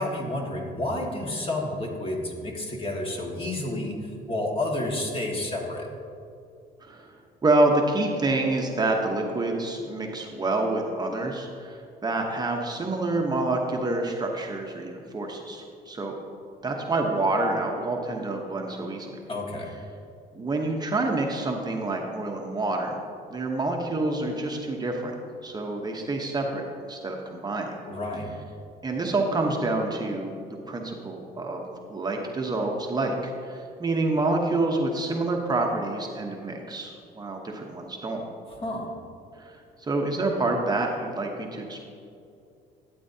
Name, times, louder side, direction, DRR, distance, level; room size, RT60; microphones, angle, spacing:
voice 1, 0.0-4.0 4.3-5.9 19.3-19.7 27.9-28.3 38.6-38.9, left 1 dB, 35° left, -1 dB, 1.7 m, -30 dB
voice 2, 6.8-7.1 7.4-16.1 16.6-19.2 20.3-23.0 23.3-25.2 25.4-26.6 26.9-27.7 28.8-30.3 30.7-38.2 39.4-41.9, right 2 dB, 25° right, 1 dB, 0.9 m, -27 dB
12.5 x 8.7 x 2.8 m, 2.5 s
cardioid pair, 110°, 17 cm